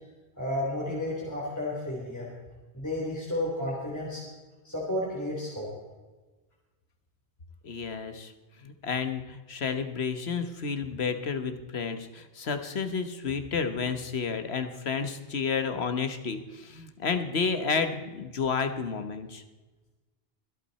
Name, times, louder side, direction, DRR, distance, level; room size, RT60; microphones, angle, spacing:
voice 1, 0.4-2.3 2.7-4.2 4.6-5.7, left 1 dB, 15° left, -6 dB, 3.8 m, -32 dB
voice 2, 7.6-8.3 8.6-19.4, left 5 dB, 75° left, 9 dB, 1.5 m, -31 dB
24.5 x 8.6 x 4.2 m, 1.2 s
omnidirectional pair, 1.1 m